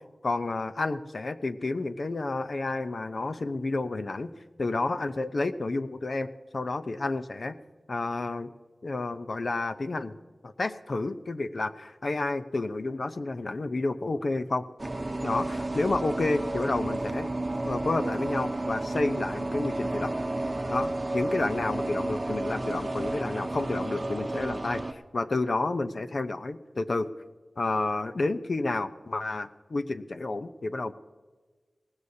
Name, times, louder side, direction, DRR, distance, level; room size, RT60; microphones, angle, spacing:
voice 1, 0.2-4.3 4.6-7.5 7.9-8.5 8.8-10.2 10.4-14.6 15.2-17.3 17.6-20.1 20.7-27.1 27.6-30.9, left 2 dB, 65° left, 10 dB, 0.7 m, -30 dB
sound 1, 14.8-24.9, right 2 dB, 35° right, 0.8 m, -31 dB
19.5 x 16.0 x 2.8 m, 1.4 s
wide cardioid pair, 70°, 0 cm